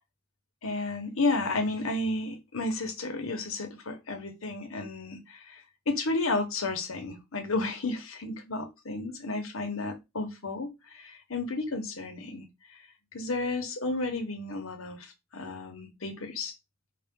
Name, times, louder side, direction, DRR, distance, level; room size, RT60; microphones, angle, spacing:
voice 1, 0.6-12.5 13.1-16.5, left 2 dB, 75° left, 1.1 m, -32 dB
4.9 x 2.5 x 3.6 m
head